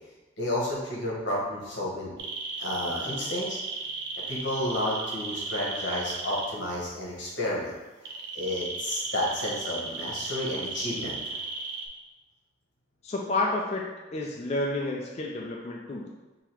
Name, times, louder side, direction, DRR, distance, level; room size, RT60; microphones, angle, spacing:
voice 1, 0.4-2.1 2.6-3.6 4.3-7.7 8.3-11.4, left 1 dB, 65° left, -5 dB, 1.4 m, -31 dB
sound 1, 2.2-6.5 8.0-11.9, right 4 dB, 60° right, 0.6 m, -35 dB
voice 2, 13.0-13.8 14.1-16.1, left 2 dB, 35° left, -2 dB, 0.4 m, -30 dB
3.8 x 2.9 x 4.5 m, 1.2 s
head